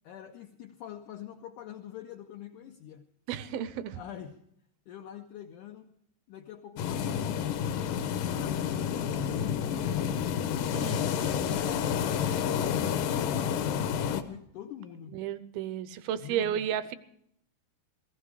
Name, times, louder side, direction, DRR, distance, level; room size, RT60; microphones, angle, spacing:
voice 1, 0.0-3.0 4.0-4.4 4.9-5.9 6.3-7.6 8.3-10.2 11.5-15.2 16.2-16.6, left 11 dB, 90° left, 3 dB, 1.8 m, -45 dB
voice 2, 3.3-4.0 10.7-11.2 15.1-17.0, right 10 dB, 80° right, 14 dB, 2.4 m, -33 dB
sound 1, 6.8-14.2, left 8 dB, 70° left, 2.1 m, -29 dB
18.5 x 15.0 x 4.8 m, 0.71 s
omnidirectional pair, 4.6 m